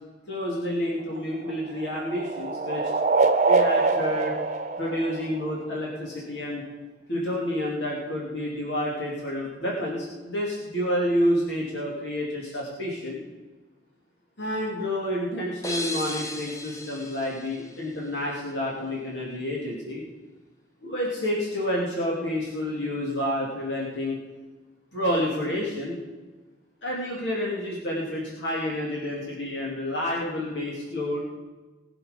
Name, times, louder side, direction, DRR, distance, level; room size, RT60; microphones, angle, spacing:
voice 1, 0.3-2.8 3.4-4.3 4.8-6.6 7.1-13.2 14.4-20.0 20.8-24.2 24.9-26.0 26.8-31.3, left 1 dB, 85° left, -4 dB, 2.8 m, -29 dB
sound 1, 1.0-5.8, right 3 dB, 45° right, 0.8 m, -25 dB
sound 2, 15.6-18.4, left 1 dB, 20° left, 0.9 m, -36 dB
20.0 x 7.1 x 5.2 m, 1.2 s
head